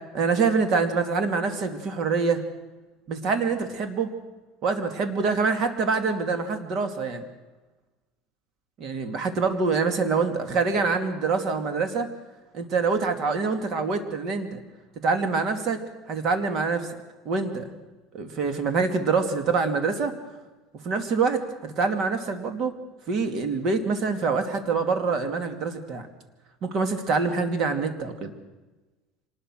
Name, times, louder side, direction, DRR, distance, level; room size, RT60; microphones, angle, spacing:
voice 1, 0.1-2.4 3.1-4.1 4.6-7.2 8.8-12.1 12.5-14.6 15.0-15.8 16.1-17.0 17.2-17.7 18.1-20.1 20.8-22.7 23.1-26.1 26.6-28.3, right 4 dB, 45° right, 7 dB, 2.6 m, -25 dB
25.5 x 20.0 x 6.4 m, 1.2 s
cardioid pair, 145°, 0 cm